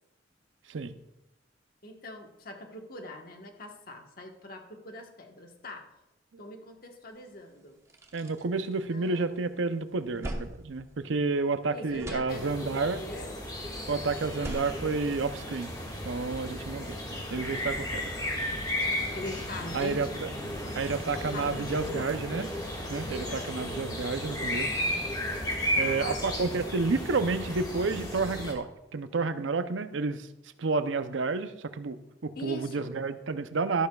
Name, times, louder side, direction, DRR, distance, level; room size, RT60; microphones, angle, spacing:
voice 1, 1.8-5.9 6.4-7.8 8.9-9.2 11.7-13.3 19.1-20.2 21.3-22.1 23.2-23.6 25.7-26.2 32.3-32.9, left 1 dB, 50° left, 3 dB, 1.3 m, -42 dB
sound 1, 7.2-7.3 7.7-9.4 9.7-11.6 11.8-12.9 14.2-15.8, right 1 dB, 15° right, 0.9 m, -42 dB
voice 2, 8.1-13.0 13.9-15.7 16.0-17.0 17.3-18.1 19.7-20.3 20.7-22.5 22.9-24.8 25.8-30.3 30.6-33.9, right 4 dB, 85° right, 11 dB, 0.6 m, -30 dB
sound 2, 12.3-28.5, left 1 dB, 20° left, 1.7 m, -34 dB
12.5 x 11.5 x 2.3 m, 0.93 s
head